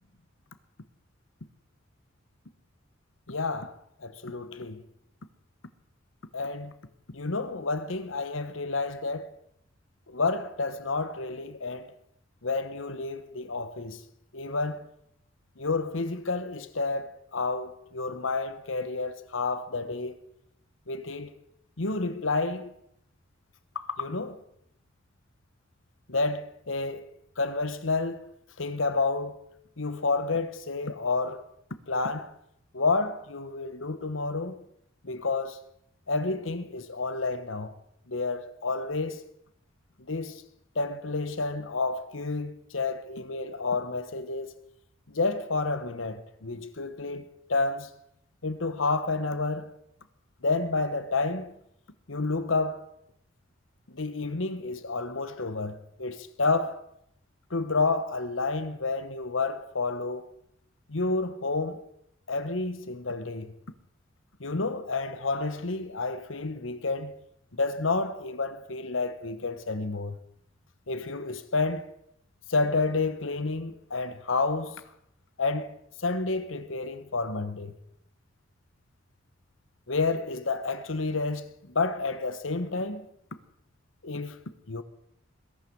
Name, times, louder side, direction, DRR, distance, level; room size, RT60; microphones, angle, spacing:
voice 1, 3.3-4.8 6.3-6.7 7.1-9.3 10.1-11.9 12.4-14.0 14.3-14.9 15.6-20.2 20.9-21.3 21.8-22.7 23.7-24.4 26.1-27.1 27.4-28.3 28.6-29.4 29.8-31.4 31.9-32.3 32.7-34.7 35.0-35.6 36.1-37.7 38.1-39.2 40.1-40.4 40.7-44.6 45.1-47.9 48.4-49.7 50.4-51.5 52.1-52.9 53.9-56.8 57.5-60.3 60.9-61.8 62.3-63.5 64.4-67.1 67.5-70.2 70.9-71.9 72.5-74.8 75.4-77.7 79.9-83.1 84.0-84.4 84.7-84.8, left 3 dB, 80° left, 1.2 m, -30 dB
21.0 x 11.5 x 4.8 m
head